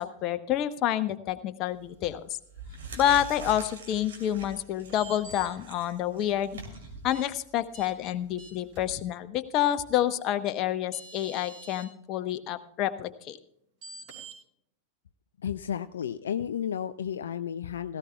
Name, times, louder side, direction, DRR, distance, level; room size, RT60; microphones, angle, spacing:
voice 1, 0.0-2.2 3.0-6.6 7.0-13.4, left 11 dB, 35° left, 11 dB, 0.8 m, -28 dB
sound 1, 1.7-2.0 2.4-8.9, right 3 dB, 60° right, 3.1 m, -45 dB
sound 2, 4.9-5.5 7.1-7.2 7.7-7.9 8.4-8.8 10.4-10.5 10.9-11.9 13.8-14.4, right 3 dB, 40° right, 5.5 m, -45 dB
voice 2, 15.4-18.0, left 9 dB, 65° left, 11 dB, 0.4 m, -32 dB
17.5 x 15.5 x 2.3 m, 0.70 s
figure-of-eight pair, 90°, 0 cm